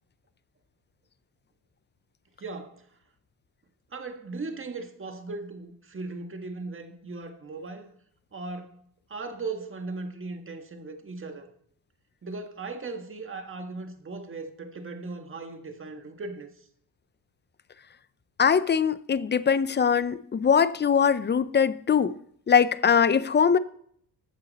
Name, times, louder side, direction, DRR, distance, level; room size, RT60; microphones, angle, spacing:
voice 1, 2.4-2.8 3.9-7.9 8.3-8.8 9.1-11.5 12.2-16.6, right 3 dB, 30° right, 1.6 m, -38 dB
voice 2, 18.4-22.1 22.5-23.6, left 7 dB, 25° left, 0.5 m, -22 dB
14.0 x 8.9 x 4.1 m
cardioid pair, 110°, 43 cm